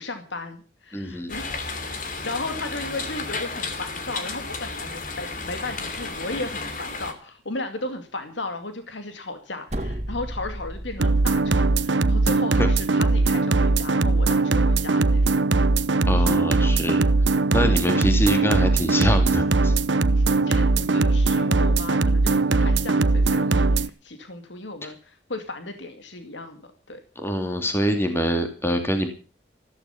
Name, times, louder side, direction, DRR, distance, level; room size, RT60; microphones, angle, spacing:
voice 1, 0.0-1.5 2.2-15.3 16.1-16.2 20.1-26.6 26.9-27.0, left 2 dB, 85° left, 7 dB, 2.4 m, -35 dB
voice 2, 0.9-1.3 12.6-12.7 16.1-17.0 17.5-19.8 27.2-29.1, equal, 15° left, 6 dB, 2.6 m, -24 dB
sound 1, 1.3-7.1, left 3 dB, 45° left, 2.7 m, -33 dB
sound 2, 9.7-11.8, right 1 dB, 35° right, 1.7 m, -33 dB
sound 3, 11.0-23.9, right 3 dB, 85° right, 0.9 m, -20 dB
14.5 x 14.0 x 5.8 m, 0.36 s
head